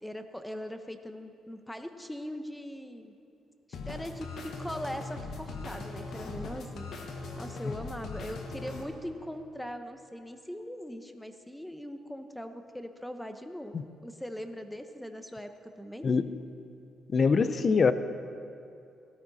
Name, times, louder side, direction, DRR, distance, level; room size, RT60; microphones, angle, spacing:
voice 1, 0.0-3.1 3.9-6.9 7.4-13.7 14.0-16.1, equal, 5° left, 7 dB, 1.0 m, -40 dB
sound 1, 3.7-8.8, left 3 dB, 65° left, 1.4 m, -40 dB
voice 2, 17.1-17.9, left 5 dB, 45° left, 12 dB, 0.6 m, -23 dB
17.0 x 14.0 x 4.2 m, 2.6 s
cardioid pair, 90°, 0 cm